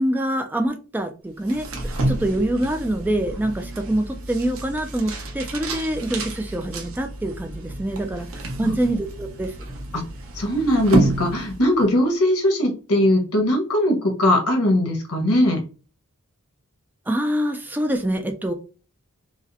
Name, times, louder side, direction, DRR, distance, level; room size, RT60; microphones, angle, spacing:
voice 1, 0.0-9.5 17.1-18.5, right 1 dB, 10° right, 0.3 m, -25 dB
sound 1, 1.4-11.9, right 2 dB, 65° right, 0.9 m, -29 dB
voice 2, 10.3-15.6, left 1 dB, 80° left, 1.3 m, -20 dB
4.9 x 2.1 x 2.6 m
head